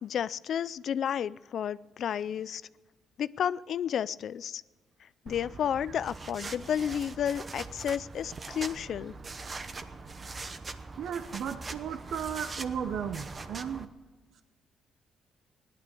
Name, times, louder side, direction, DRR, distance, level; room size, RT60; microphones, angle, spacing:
voice 1, 0.0-2.6 3.2-4.6 5.3-9.1, left 9 dB, 65° left, 17 dB, 0.4 m, -31 dB
sound 1, 5.3-13.9, right 3 dB, 35° right, 0.9 m, -42 dB
voice 2, 11.0-13.9, right 8 dB, 70° right, 9 dB, 0.8 m, -35 dB
16.5 x 11.5 x 6.8 m, 1.3 s
cardioid pair, 90°, 0 cm